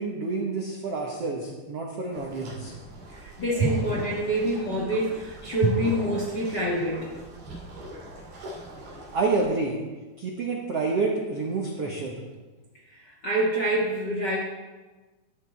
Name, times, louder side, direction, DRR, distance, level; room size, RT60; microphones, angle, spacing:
voice 1, 0.0-2.7 9.1-9.8 10.2-12.2, right 3 dB, 75° right, -1 dB, 1.4 m, -28 dB
sound 1, 2.1-9.4, right 4 dB, 50° right, 4.4 m, -34 dB
voice 2, 3.1-7.1 12.9-14.4, right 1 dB, 45° left, -3 dB, 1.3 m, -27 dB
14.0 x 10.5 x 4.5 m, 1.2 s
omnidirectional pair, 4.8 m